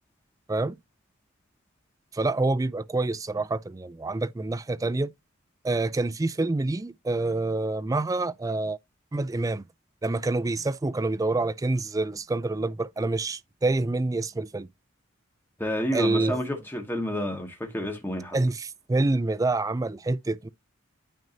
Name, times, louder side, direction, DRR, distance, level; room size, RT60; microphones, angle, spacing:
voice 1, 2.1-5.1 5.6-8.8 9.1-9.6 10.0-14.7 15.9-16.5 18.3-20.5, right 2 dB, 15° right, 0.3 m, -27 dB
voice 2, 15.6-18.4, equal, 10° left, 1.9 m, -30 dB
9.2 x 5.2 x 2.7 m
head